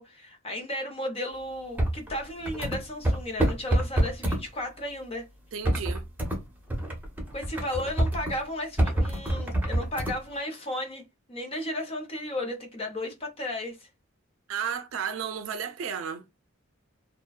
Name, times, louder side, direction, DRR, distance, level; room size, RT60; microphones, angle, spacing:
voice 1, 0.0-5.3 7.3-11.0 11.3-13.9, left 1 dB, 30° left, 0.6 m, -34 dB
sound 1, 1.8-4.4 5.6-6.4 6.7-8.4 8.8-10.2, right 1 dB, 10° right, 0.7 m, -26 dB
voice 2, 5.5-6.0 14.5-16.2, right 7 dB, 70° right, 0.4 m, -33 dB
2.5 x 2.1 x 2.2 m
head